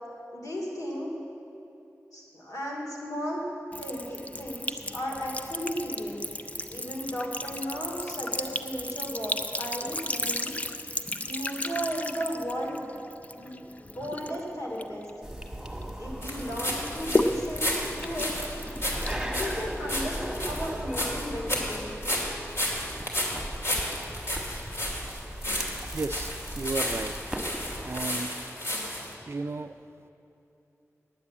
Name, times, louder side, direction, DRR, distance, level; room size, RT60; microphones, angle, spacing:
voice 1, 0.3-1.1 2.1-3.4 3.8-6.2 6.7-10.6 11.3-12.9 13.3-15.1 16.0-17.7 18.0-18.3 19.3-21.9, equal, 75° left, -2 dB, 2.8 m, -35 dB
Sink (filling or washing) / Trickle dribble, 3.7-15.8 16.2-20.1, left 1 dB, 25° left, 0.5 m, -34 dB
sound 1, 15.2-28.1, right 1 dB, 5° right, 1.3 m, -38 dB
sound 2, 16.2-29.1, left 1 dB, 55° left, 2.6 m, -33 dB
voice 2, 25.9-27.1 27.9-28.3 29.3-29.7, right 3 dB, 50° right, 11 dB, 0.4 m, -33 dB
9.7 x 8.4 x 8.6 m, 2.9 s
cardioid pair, 45°, 6 cm